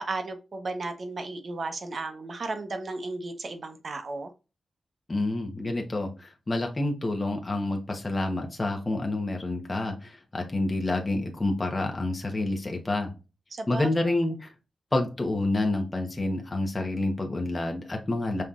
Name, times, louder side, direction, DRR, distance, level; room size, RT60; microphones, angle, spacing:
voice 1, 0.0-4.3 13.6-14.2, right 3 dB, 55° right, 7 dB, 1.0 m, -34 dB
voice 2, 5.1-13.1 13.7-14.5 14.9-18.4, left 2 dB, 30° left, 2 dB, 1.1 m, -28 dB
5.6 x 3.1 x 2.5 m, 0.29 s
wide cardioid pair, 85°, 0 cm